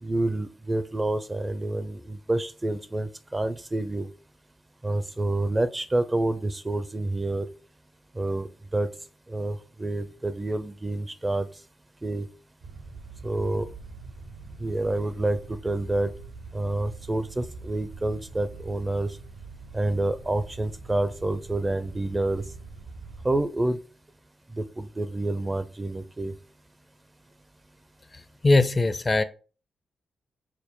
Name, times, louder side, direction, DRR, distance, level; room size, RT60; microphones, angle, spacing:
voice 1, 0.0-4.1 4.8-7.5 8.2-8.9 9.3-11.5 12.0-12.3 13.2-13.7 14.6-16.1 16.5-19.1 19.7-22.4 23.2-23.8 24.6-26.3, right 2 dB, 25° right, 0.4 m, -28 dB
sound 1, 12.6-23.4, right 3 dB, 80° right, 0.7 m, -43 dB
voice 2, 28.4-29.2, left 2 dB, 35° left, 0.4 m, -20 dB
4.8 x 2.1 x 3.6 m
supercardioid pair, 50°, 0 cm